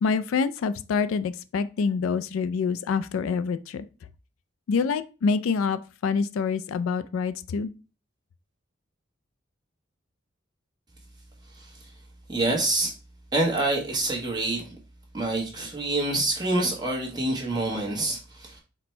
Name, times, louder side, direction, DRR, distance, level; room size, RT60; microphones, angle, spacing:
voice 1, 0.0-3.8 4.7-7.7, left 5 dB, 85° left, 0.3 m, -26 dB
voice 2, 12.3-12.9 13.3-14.8 15.1-18.6, right 2 dB, 20° right, 1.0 m, -26 dB
4.2 x 2.1 x 4.3 m
head